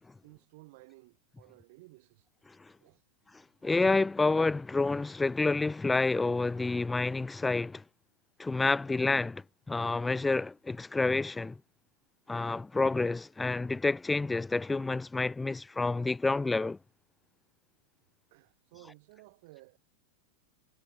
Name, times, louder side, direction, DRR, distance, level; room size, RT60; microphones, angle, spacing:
voice 1, 0.2-2.3 2.8-3.0 18.3-19.8, right 23 dB, 50° right, 2.5 m, -56 dB
voice 2, 3.6-7.8 8.4-11.5 12.3-16.8, left 3 dB, 10° left, 0.5 m, -29 dB
figure-of-eight pair, 90°, 0 cm